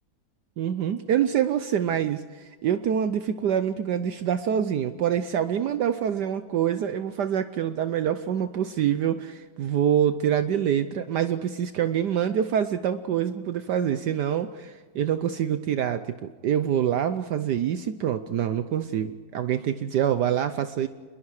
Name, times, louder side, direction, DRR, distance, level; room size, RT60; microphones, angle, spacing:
voice 1, 0.6-20.9, right 9 dB, 65° right, 10 dB, 1.3 m, -26 dB
28.5 x 21.5 x 4.8 m, 1.5 s
omnidirectional pair, 2.1 m